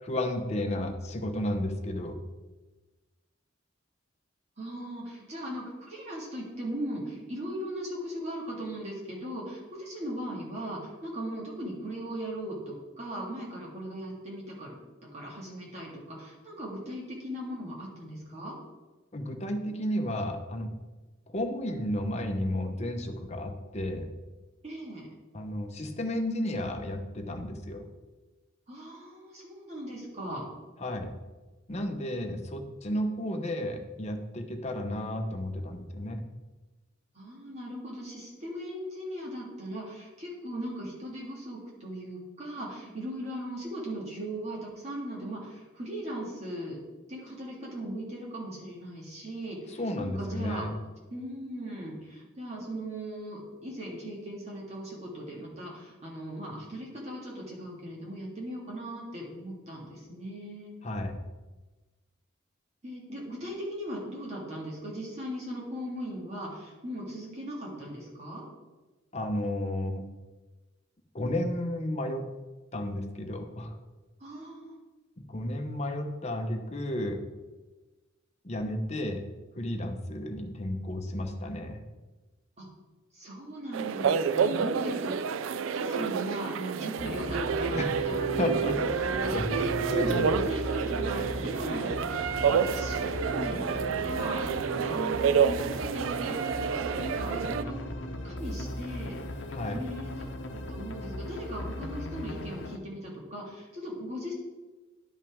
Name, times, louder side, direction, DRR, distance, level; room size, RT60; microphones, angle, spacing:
voice 1, 0.0-2.2 19.1-20.7 21.3-24.1 25.3-27.8 30.8-31.1 31.7-36.2 49.7-50.7 60.8-61.2 69.1-70.0 71.1-72.2 72.7-73.8 75.3-77.2 78.4-79.2 79.6-81.8 87.7-88.0 88.4-90.3 99.5-99.8, left 1 dB, 35° left, 5 dB, 0.8 m, -32 dB
voice 2, 4.6-14.8 15.1-18.6 24.6-25.1 28.7-30.5 37.1-46.8 47.1-50.7 51.1-60.7 62.8-68.4 74.2-74.7 82.6-82.7 83.1-85.3 85.7-95.6 95.9-96.4 96.8-97.8 98.2-99.2 99.7-104.3, right 1 dB, 35° right, -4 dB, 1.9 m, -38 dB
sound 1, 83.7-97.6, right 6 dB, 85° right, 0.3 m, -29 dB
sound 2, 87.0-102.8, left 1 dB, 70° left, 0.8 m, -38 dB
11.0 x 5.5 x 3.5 m, 1.2 s
head